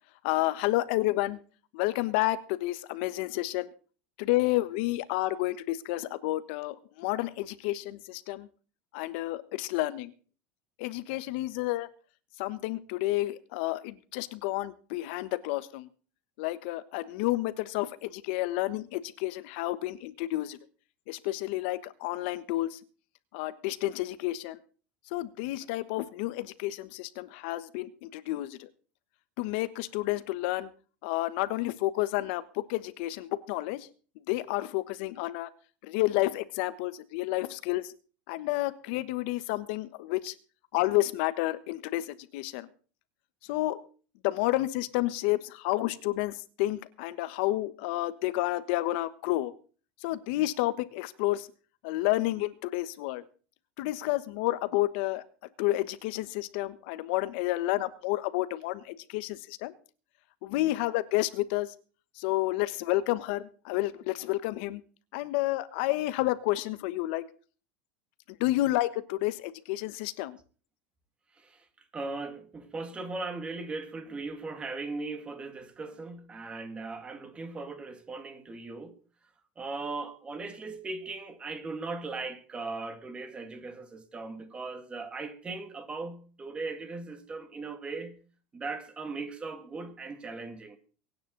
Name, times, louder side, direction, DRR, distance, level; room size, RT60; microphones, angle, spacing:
voice 1, 0.2-1.4 1.7-3.7 4.2-8.5 8.9-10.1 10.8-11.9 12.4-15.9 16.4-20.6 21.1-22.8 23.3-24.6 25.1-28.7 29.4-30.7 31.0-33.9 34.3-35.5 35.8-37.9 38.3-40.3 40.7-42.7 43.5-43.8 44.2-49.5 50.0-51.5 51.8-53.2 53.8-55.2 55.6-59.7 60.4-61.7 62.2-64.8 65.1-67.2 68.4-70.4, left 17 dB, 65° left, 1.2 m, -30 dB
voice 2, 71.9-79.0 79.6-88.2 88.5-90.8, right 3 dB, 15° right, 2.2 m, -38 dB
23.5 x 9.8 x 3.9 m
supercardioid pair, 150°, 6 cm